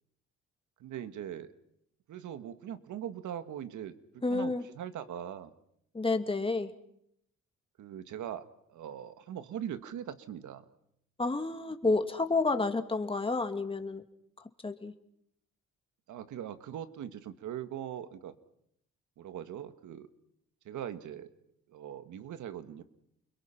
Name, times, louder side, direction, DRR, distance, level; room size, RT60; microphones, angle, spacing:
voice 1, 0.8-1.5 2.1-4.0 4.3-5.5 7.8-10.6 16.1-18.4 19.2-20.1 20.7-21.3 21.7-22.8, right 10 dB, 75° right, 11 dB, 1.9 m, -41 dB
voice 2, 4.2-4.6 5.9-6.7 11.2-14.0 14.6-14.9, left 3 dB, 15° left, 7 dB, 2.3 m, -30 dB
29.5 x 22.0 x 5.8 m, 0.73 s
cardioid pair, 90°, 30 cm